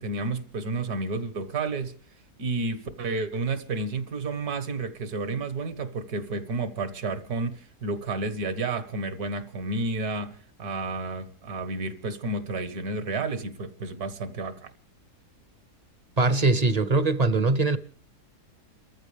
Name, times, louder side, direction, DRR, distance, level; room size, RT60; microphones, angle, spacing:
voice 1, 0.0-2.0 2.4-14.7, right 3 dB, 70° right, 1.8 m, -31 dB
voice 2, 16.2-17.8, right 3 dB, 40° right, 0.6 m, -22 dB
30.0 x 14.0 x 3.4 m
omnidirectional pair, 1.7 m